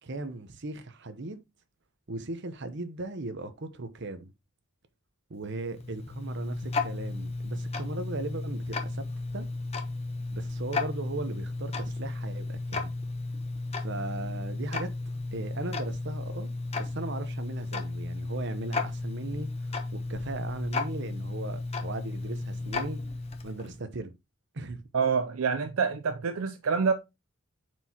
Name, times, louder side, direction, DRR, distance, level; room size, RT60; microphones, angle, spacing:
voice 1, 0.0-1.4 2.1-4.3 5.3-9.0 9.3-9.5 10.3-12.9 13.8-14.9 15.3-19.5 19.9-23.0 23.4-24.1 24.5-24.8, right 2 dB, 55° right, 0.9 m, -37 dB
Tick-tock, 5.4-23.8, left 3 dB, 30° left, 0.9 m, -34 dB
voice 2, 24.9-26.9, right 5 dB, 75° right, 0.5 m, -27 dB
7.4 x 4.7 x 2.9 m
head